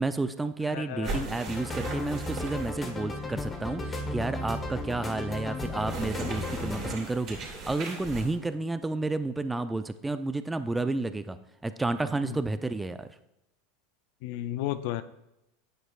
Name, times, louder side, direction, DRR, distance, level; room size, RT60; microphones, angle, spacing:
voice 1, 0.0-11.4 11.6-13.1, right 2 dB, 10° right, 11 dB, 0.4 m, -31 dB
voice 2, 0.7-1.1 12.2-12.4 14.2-15.0, left 13 dB, 65° left, 13 dB, 0.4 m, -33 dB
sound 1, 1.0-3.0 5.8-8.4, right 3 dB, 50° right, 2.7 m, -38 dB
sound 2, 1.5-6.9, left 1 dB, 25° left, 1.2 m, -35 dB
9.0 x 6.1 x 2.4 m, 0.88 s
hypercardioid pair, 90°, 0 cm